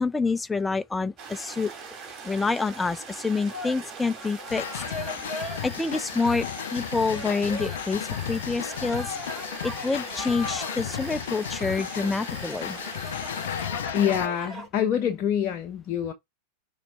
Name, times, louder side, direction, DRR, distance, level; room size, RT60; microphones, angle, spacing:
voice 1, 0.0-1.7 2.2-4.8 5.4-9.2 9.6-12.8, left 4 dB, 10° left, 0.5 m, -27 dB
sound 1, 1.2-13.7, right 5 dB, 30° right, 3.3 m, -42 dB
sound 2, 3.5-5.9 6.5-6.6 7.1-14.7, left 1 dB, 10° right, 4.1 m, -39 dB
sound 3, 4.5-14.3, left 10 dB, 60° left, 0.4 m, -34 dB
voice 2, 13.9-16.1, left 9 dB, 35° left, 0.9 m, -26 dB
5.9 x 3.9 x 4.6 m
figure-of-eight pair, 90°, 0 cm